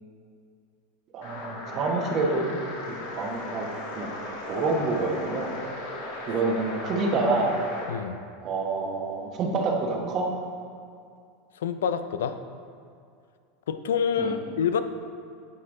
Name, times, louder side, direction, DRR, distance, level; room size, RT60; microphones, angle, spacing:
voice 1, 1.1-2.4 2.8-3.7 3.9-4.1 4.5-5.5 6.3-7.5 8.4-10.3 14.2-14.3, right 3 dB, 45° right, 1 dB, 1.1 m, -27 dB
sound 1, 1.2-8.0, left 2 dB, 70° left, 1.7 m, -36 dB
voice 2, 7.9-8.2 11.6-12.4 13.7-14.8, left 7 dB, 90° left, 10 dB, 0.4 m, -27 dB
8.3 x 4.5 x 3.6 m, 2.3 s
supercardioid pair, 110°, 0 cm